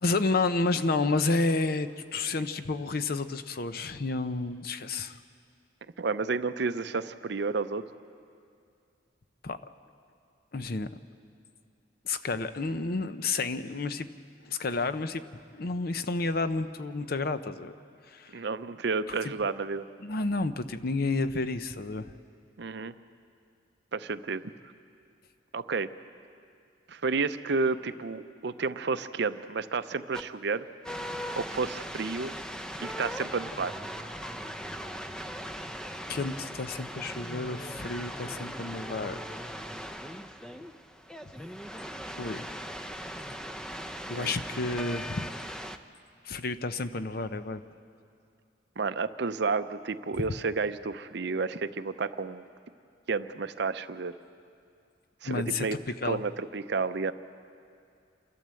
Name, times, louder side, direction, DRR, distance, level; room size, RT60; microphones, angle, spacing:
voice 1, 0.0-5.2 9.4-9.6 10.5-10.9 12.0-14.1 14.5-15.2 15.5-17.7 18.1-18.5 19.1-19.2 20.0-22.1 36.1-39.2 42.2-42.5 44.1-45.3 46.2-47.6 50.2-50.3 55.2-55.7 56.0-56.2, left 3 dB, 50° left, 11 dB, 0.7 m, -30 dB
voice 2, 6.0-7.8 18.3-19.9 22.6-22.9 23.9-24.4 25.5-25.9 26.9-30.7 31.4-32.3 32.8-33.8 44.1-44.3 48.8-52.4 53.1-54.1 55.2-55.8 56.0-57.1, right 4 dB, 60° right, 12 dB, 0.6 m, -31 dB
sound 1, 30.1-30.2 30.8-45.8, equal, 5° left, 0.5 m, -39 dB
28.0 x 12.5 x 7.7 m, 2.4 s
head